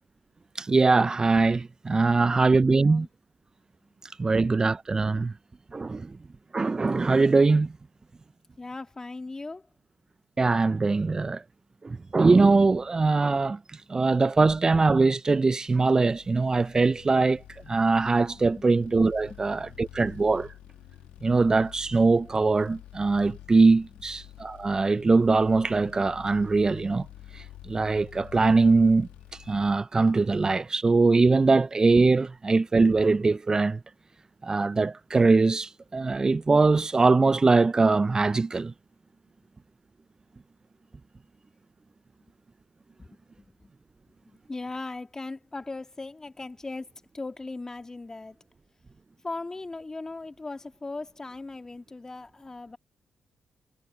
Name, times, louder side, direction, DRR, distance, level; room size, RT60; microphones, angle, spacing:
voice 1, 0.6-3.1 4.2-5.3 5.7-6.1 6.5-7.7 10.4-11.4 11.8-13.6 13.9-17.4 17.7-20.5 21.2-27.1 27.3-29.1 29.5-33.8 34.4-38.7, right 3 dB, 35° right, 0.6 m, -22 dB
voice 2, 2.1-3.1 8.6-9.7 18.5-18.7 19.3-19.4 23.9-24.0 43.0-43.7 44.2-48.4 49.2-52.8, left 3 dB, 30° left, 2.3 m, -39 dB
sound 1, 16.0-29.8, left 14 dB, 80° left, 1.9 m, -48 dB
hypercardioid pair, 40°, 2 cm